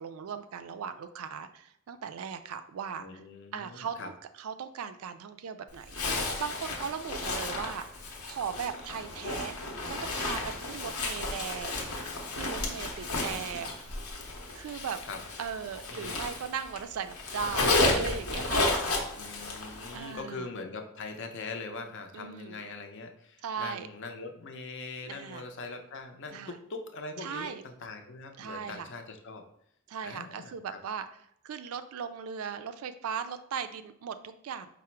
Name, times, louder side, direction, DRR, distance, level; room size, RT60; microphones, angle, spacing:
voice 1, 0.0-3.1 3.5-4.1 4.4-13.9 14.5-15.0 15.4-18.6 19.9-20.5 22.1-22.6 23.4-23.9 25.1-25.4 26.3-26.6 27.2-27.6 28.4-28.9 29.9-31.1 31.4-34.7, right 7 dB, 70° right, 10 dB, 0.3 m, -38 dB
voice 2, 3.0-4.1 13.2-13.4 15.0-15.2 15.9-16.1 19.2-29.4 30.0-30.8, left 3 dB, 55° left, 5 dB, 0.5 m, -42 dB
Zipper (clothing), 5.9-16.8 17.1-20.0, left 2 dB, 85° left, 0.8 m, -32 dB
4.7 x 2.0 x 4.4 m, 0.71 s
head